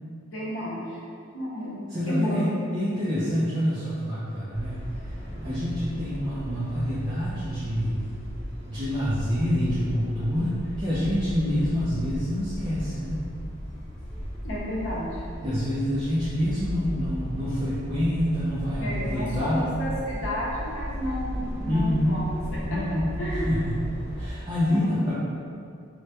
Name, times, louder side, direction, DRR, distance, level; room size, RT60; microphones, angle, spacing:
voice 1, 0.3-1.0 1.3-1.8 2.1-2.5 14.4-15.2 18.8-22.3 22.7-22.8 23.2-23.5 24.7-25.1, equal, 75° left, -7 dB, 0.7 m, -31 dB
voice 2, 1.9-5.1 5.4-8.0 8.7-13.3 15.4-19.7 21.7-22.2 22.7-23.8 24.2-25.1, equal, 20° right, -11 dB, 0.3 m, -27 dB
sound 1, 4.5-24.3, equal, 30° left, 0.5 m, -36 dB
2.1 x 2.1 x 2.8 m, 2.4 s
head